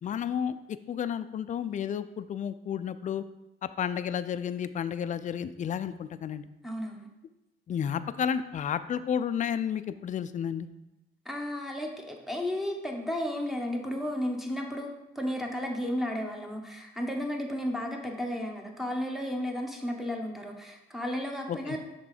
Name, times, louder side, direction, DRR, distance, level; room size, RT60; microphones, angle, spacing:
voice 1, 0.0-0.5 0.9-3.2 3.8-6.5 7.7-10.7 21.5-21.8, left 8 dB, 40° left, 13 dB, 0.4 m, -31 dB
voice 2, 6.6-7.1 11.2-21.8, left 1 dB, ahead, 1 dB, 1.0 m, -33 dB
6.0 x 3.7 x 5.0 m, 0.96 s
cardioid pair, 90°, 20 cm